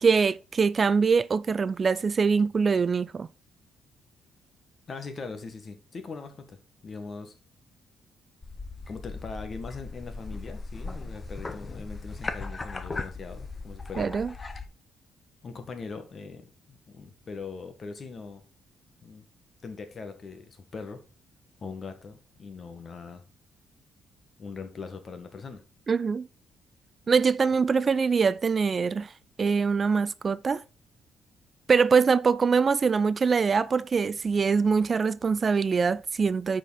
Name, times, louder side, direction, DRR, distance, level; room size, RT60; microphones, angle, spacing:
voice 1, 0.0-3.3 14.0-14.3 25.9-26.3 27.1-29.1 29.4-30.6 31.7-36.6, right 5 dB, 40° right, 0.3 m, -23 dB
voice 2, 4.9-7.3 8.9-14.1 15.4-18.4 19.0-19.3 19.6-21.0 21.6-23.2 24.4-25.6, left 4 dB, 45° left, 1.8 m, -41 dB
sound 1, 8.4-14.7, left 3 dB, 25° left, 0.9 m, -38 dB
8.4 x 5.1 x 4.2 m
cardioid pair, 90°, 0 cm